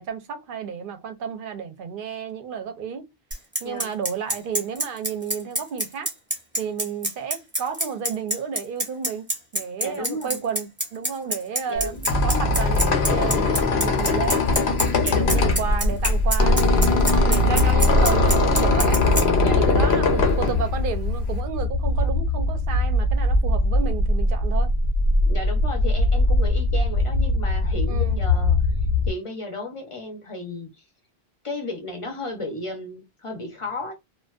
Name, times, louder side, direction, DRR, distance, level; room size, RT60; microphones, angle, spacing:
voice 1, 0.0-3.1 3.6-6.1 6.5-9.3 9.5-11.9 12.2-14.4 15.1-19.0 19.6-24.7 27.9-28.2, right 6 dB, 60° right, 0.7 m, -32 dB
Bicycle, 3.3-19.2, right 1 dB, 10° right, 0.8 m, -25 dB
voice 2, 3.6-3.9 9.8-10.4 11.7-12.0 15.0-15.5 19.4-19.9 25.3-28.7 29.1-30.8 31.4-33.9, left 2 dB, 40° left, 0.6 m, -34 dB
Squeak, 11.8-21.4, left 3 dB, 85° left, 0.9 m, -21 dB
sound 1, 15.2-29.1, left 1 dB, 65° left, 0.8 m, -22 dB
2.5 x 2.2 x 2.3 m
omnidirectional pair, 1.0 m